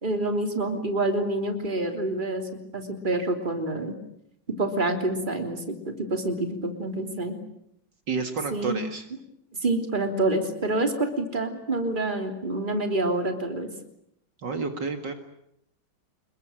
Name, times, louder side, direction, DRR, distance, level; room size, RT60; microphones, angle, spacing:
voice 1, 0.0-4.0 4.5-7.4 8.5-8.8 9.6-13.7, right 2 dB, 25° right, 5 dB, 3.4 m, -27 dB
voice 2, 8.1-9.0 14.4-15.1, right 4 dB, 60° right, 6 dB, 2.6 m, -30 dB
28.5 x 22.0 x 9.0 m, 0.76 s
omnidirectional pair, 2.2 m